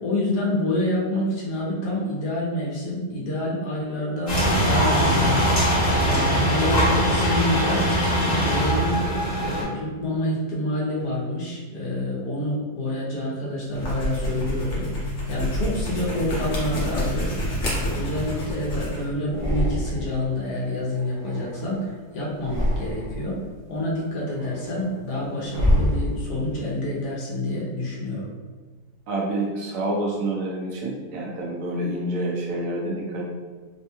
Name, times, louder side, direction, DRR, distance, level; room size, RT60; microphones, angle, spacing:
voice 1, 0.0-7.9 8.2-9.0 9.4-17.3 17.7-23.4 23.7-28.3, left 1 dB, 75° left, -4 dB, 1.3 m, -28 dB
sound 1, 4.3-9.6, equal, 30° left, 0.9 m, -21 dB
sound 2, 13.7-19.1, equal, 55° left, 1.1 m, -28 dB
sound 3, 14.8-15.5 16.2-17.1 17.6-18.8 19.2-20.3 20.5-21.9 22.3-23.3 23.8-26.6, equal, 20° right, 0.7 m, -29 dB
voice 2, 29.1-33.2, right 1 dB, 65° right, -3 dB, 1.0 m, -28 dB
3.5 x 2.2 x 2.8 m, 1.4 s
omnidirectional pair, 1.7 m